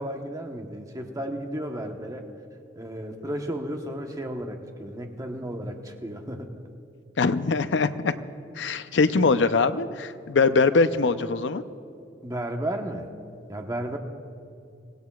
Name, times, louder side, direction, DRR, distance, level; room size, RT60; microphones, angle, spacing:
voice 1, 0.0-2.3 2.8-6.5 12.2-13.1 13.5-14.0, right 1 dB, 20° right, 3 dB, 1.0 m, -33 dB
voice 2, 7.2-8.1 8.6-11.6, left 4 dB, 75° left, 11 dB, 0.6 m, -22 dB
24.5 x 17.0 x 2.4 m, 2.5 s
head